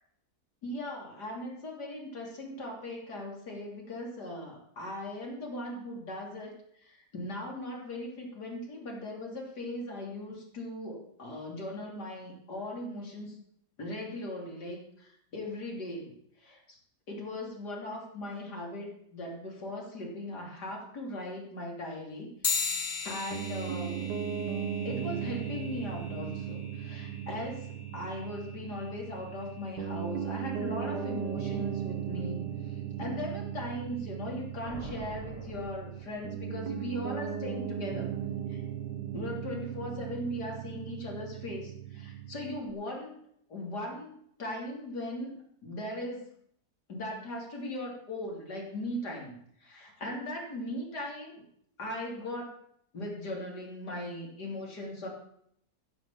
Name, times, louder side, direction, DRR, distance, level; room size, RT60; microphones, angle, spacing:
voice 1, 0.6-13.4 13.8-16.1 16.4-16.8 17.1-22.8 23.0-24.1 24.8-27.7 27.9-38.1 38.5-38.6 39.1-43.2 43.5-44.1 44.4-45.4 45.6-46.2 46.9-49.3 49.6-51.4 51.8-52.5 52.9-55.1, left 1 dB, 75° left, 0 dB, 3.8 m, -39 dB
sound 1, 22.4-32.3, left 5 dB, 35° left, 0.9 m, -40 dB
Piano, 23.3-42.7, right 8 dB, 90° right, 1.8 m, -37 dB
sound 2, 34.6-36.6, right 2 dB, 30° right, 0.7 m, -46 dB
15.0 x 6.6 x 7.3 m, 0.70 s
omnidirectional pair, 1.8 m